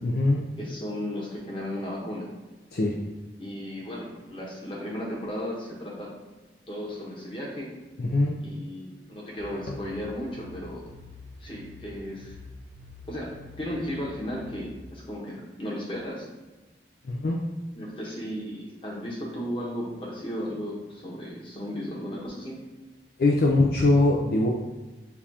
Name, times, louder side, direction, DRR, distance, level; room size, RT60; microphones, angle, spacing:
voice 1, 0.0-0.4 2.7-3.0 8.0-8.4 17.0-17.4 23.2-24.5, left 2 dB, 60° left, -1 dB, 0.4 m, -22 dB
voice 2, 0.6-2.3 3.4-6.1 6.7-7.7 8.4-10.8 11.4-12.4 13.1-16.3 17.7-22.6, equal, 30° left, -4 dB, 1.0 m, -35 dB
sound 1, 9.4-14.8, left 2 dB, 85° right, 1.0 m, -47 dB
6.8 x 2.4 x 2.8 m, 1.1 s
head